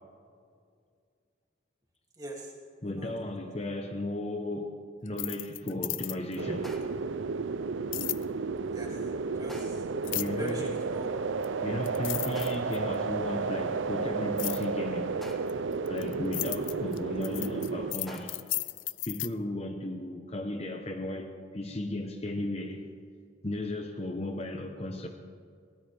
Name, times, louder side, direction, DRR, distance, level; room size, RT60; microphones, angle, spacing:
voice 1, 2.2-2.5 3.0-3.1 8.7-9.0 9.4-9.8 10.4-11.1 16.7-16.8, right 1 dB, 20° right, 2.7 m, -40 dB
voice 2, 2.8-4.8 5.0-7.0 10.1-10.8 11.6-15.2 15.9-18.5 19.1-22.9 23.4-25.1, left 1 dB, 35° left, 0.9 m, -35 dB
sound 1, 5.1-6.4 7.9-8.2 10.0-10.5 11.4-11.5 11.8-12.9 14.4-14.6 15.5-19.3, left 18 dB, 85° left, 0.5 m, -35 dB
sound 2, 6.4-17.9, right 4 dB, 85° right, 0.5 m, -32 dB
sound 3, 6.6-7.1 9.5-10.0 12.3-12.9 15.2-15.8 18.1-18.6, equal, ahead, 1.4 m, -47 dB
22.5 x 17.5 x 3.5 m
head